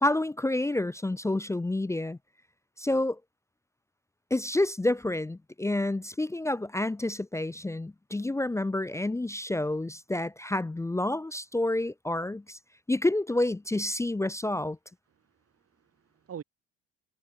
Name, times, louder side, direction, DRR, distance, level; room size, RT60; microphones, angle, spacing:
voice 1, 0.0-2.2 2.8-3.2 4.3-12.6 12.9-14.8, left 1 dB, 10° left, 0.6 m, -29 dB
voice 2, 15.1-16.4, right 8 dB, 45° right, 7.2 m, -46 dB
supercardioid pair, 90°, 34 cm